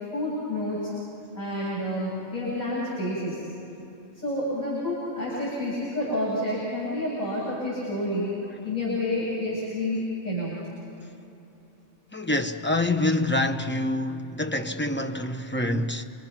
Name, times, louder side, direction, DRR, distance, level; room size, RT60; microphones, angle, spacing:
voice 1, 0.1-0.9 1.3-3.4 4.1-8.3 8.6-10.6, left 1 dB, 35° left, 7.5 m, -29 dB
voice 2, 12.1-16.0, left 1 dB, 10° left, 0.8 m, -26 dB
29.0 x 24.0 x 6.0 m
omnidirectional pair, 1.3 m